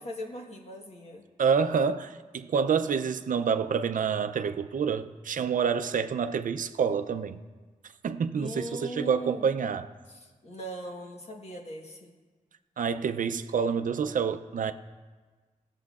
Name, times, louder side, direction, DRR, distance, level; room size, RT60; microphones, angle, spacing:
voice 1, 0.0-1.2 8.3-9.4 10.1-12.1, equal, 50° left, 1.3 m, -40 dB
voice 2, 1.4-7.4 8.0-9.9 12.8-14.7, right 6 dB, 75° right, 0.4 m, -28 dB
18.0 x 7.5 x 2.4 m
wide cardioid pair, 175°, 14 cm